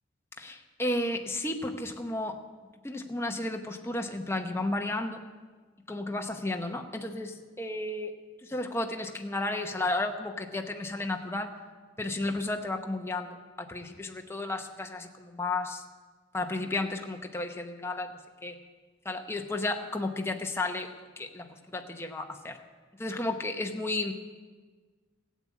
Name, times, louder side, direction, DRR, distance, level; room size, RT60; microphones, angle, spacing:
voice 1, 0.4-2.4 2.8-5.2 5.9-8.1 8.4-11.5 12.0-15.8 16.3-18.1 18.4-18.6 19.0-20.9 21.2-22.6 23.0-24.1, left 2 dB, 15° left, 4 dB, 0.9 m, -33 dB
15.0 x 8.5 x 8.5 m, 1.4 s
head